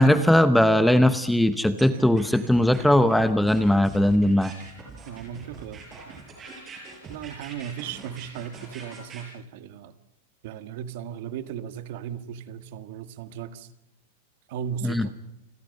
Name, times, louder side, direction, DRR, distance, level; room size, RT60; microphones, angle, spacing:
voice 1, 0.0-4.5 14.8-15.1, left 1 dB, ahead, 11 dB, 0.8 m, -19 dB
sound 1, 1.8-9.2, right 4 dB, 15° right, 6.7 m, -43 dB
voice 2, 5.1-6.2 7.1-10.0 10.4-13.7 14.5-15.1, right 8 dB, 45° right, 12 dB, 1.8 m, -36 dB
29.5 x 22.0 x 5.5 m, 0.86 s
supercardioid pair, 175°, 0 cm